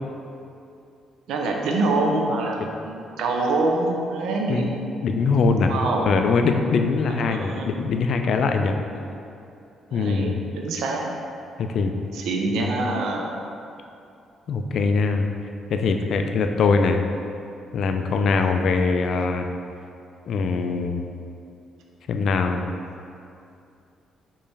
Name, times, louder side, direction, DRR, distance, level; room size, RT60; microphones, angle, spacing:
voice 1, 1.3-4.7 5.7-6.1 7.1-7.7 8.9-9.1 9.9-11.1 12.1-13.3, right 2 dB, 85° right, 0 dB, 0.5 m, -25 dB
voice 2, 5.0-5.8 6.0-8.8 9.9-10.4 11.6-11.9 12.6-12.7 14.5-15.3 15.7-17.0 17.7-19.5 20.3-21.0 22.1-22.6, left 4 dB, 65° left, 5 dB, 0.3 m, -22 dB
4.3 x 3.1 x 3.3 m, 2.6 s
cardioid pair, 90°, 0 cm